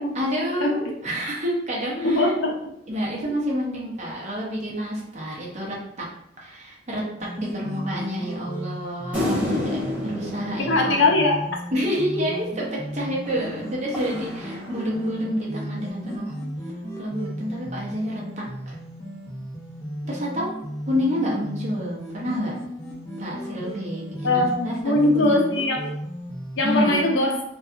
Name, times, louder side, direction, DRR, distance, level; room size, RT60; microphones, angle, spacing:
voice 1, 0.1-2.3 2.9-6.1 6.4-11.0 11.7-16.4 17.0-18.8 20.0-20.5 20.9-22.6 23.2-25.4 26.6-27.1, equal, 35° right, -4 dB, 0.6 m, -28 dB
voice 2, 2.0-2.5 10.6-11.4 24.2-25.8 26.6-27.4, left 2 dB, 70° left, 1 dB, 0.5 m, -21 dB
sound 1, 7.2-27.0, equal, 15° left, 0.5 m, -35 dB
sound 2, 9.1-11.8 13.3-15.3, left 1 dB, 5° right, 0.8 m, -30 dB
2.7 x 2.2 x 2.3 m, 0.74 s
head